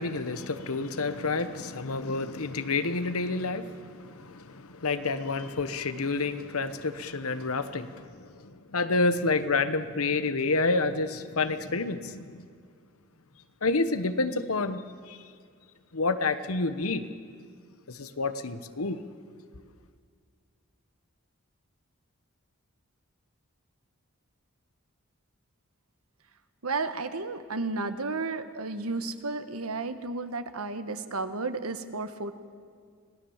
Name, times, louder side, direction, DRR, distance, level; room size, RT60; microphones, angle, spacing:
voice 1, 0.0-12.5 13.6-15.2 15.9-17.0 17.9-19.0, left 3 dB, 85° left, 11 dB, 1.1 m, -29 dB
voice 2, 26.6-32.3, right 3 dB, 90° right, 10 dB, 1.3 m, -33 dB
26.0 x 18.0 x 7.2 m, 2.1 s
head